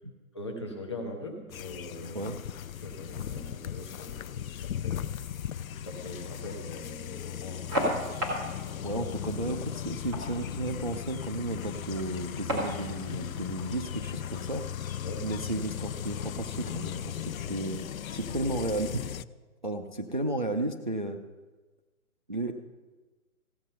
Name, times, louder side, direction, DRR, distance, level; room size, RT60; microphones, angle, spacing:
voice 1, 0.3-2.3 2.8-5.1 5.8-9.0 13.1-13.2 15.0-15.2, left 2 dB, 20° left, 1 dB, 0.9 m, -42 dB
sound 1, 1.5-19.2, left 10 dB, 65° left, 0.5 m, -37 dB
sound 2, 7.5-15.5, equal, 15° right, 2.0 m, -37 dB
voice 2, 8.8-14.7 15.2-17.8 18.1-19.1 19.6-21.2 22.3-22.5, right 2 dB, 35° right, 4 dB, 0.5 m, -33 dB
15.5 x 8.2 x 5.5 m, 1.3 s
hypercardioid pair, 180°, 44 cm